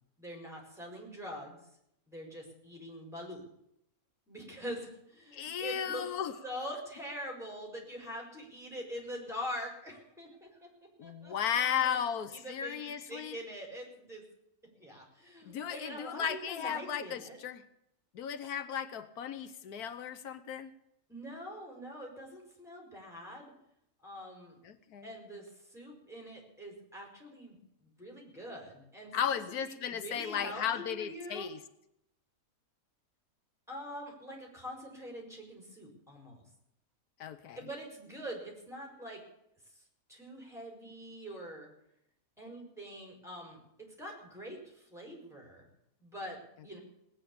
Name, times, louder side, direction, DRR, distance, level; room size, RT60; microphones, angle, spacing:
voice 1, 0.2-1.6 2.1-3.4 4.3-6.1 6.4-10.7 11.0-14.2 14.8-17.4 21.1-23.5 24.0-24.6 25.0-27.6 27.8-31.5 33.7-36.4 37.6-39.2 40.1-41.7 42.4-43.6 44.0-45.7 46.0-46.8, equal, ahead, 1 dB, 5.0 m, -44 dB
voice 2, 5.3-6.3 11.0-13.4 15.4-17.6 18.1-20.7 24.6-25.1 29.1-31.6 37.2-37.6, left 8 dB, 90° left, 12 dB, 1.4 m, -35 dB
18.5 x 9.0 x 8.6 m, 0.78 s
omnidirectional pair, 1.6 m